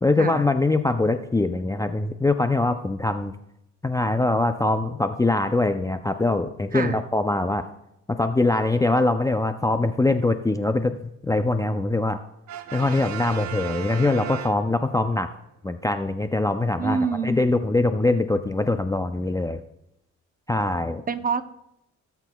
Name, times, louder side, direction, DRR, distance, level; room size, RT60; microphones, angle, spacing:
voice 1, 0.0-3.3 3.8-7.7 8.1-12.2 12.7-15.3 15.6-19.6 20.5-21.0, left 2 dB, 10° left, 8 dB, 0.5 m, -23 dB
Brass instrument, 12.5-15.1, right 10 dB, 70° right, 0.9 m, -36 dB
voice 2, 16.8-17.3 21.1-21.4, right 5 dB, 30° right, 10 dB, 0.7 m, -26 dB
17.0 x 8.1 x 2.3 m, 0.81 s
cardioid pair, 90°, 30 cm